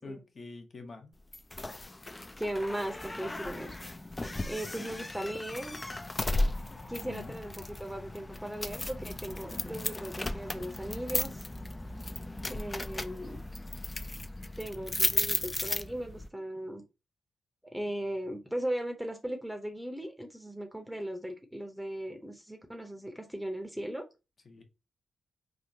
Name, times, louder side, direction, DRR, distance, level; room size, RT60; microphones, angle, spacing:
voice 1, 0.0-1.1 7.0-7.4 24.4-24.6, left 3 dB, 50° left, 0.8 m, -46 dB
sound 1, 1.3-16.3, left 2 dB, 25° left, 0.3 m, -35 dB
voice 2, 2.4-3.8 4.4-5.8 6.7-11.4 12.5-13.4 14.6-16.8 17.7-24.0, right 1 dB, 5° right, 0.7 m, -38 dB
3.6 x 2.2 x 2.7 m
supercardioid pair, 45°, 0 cm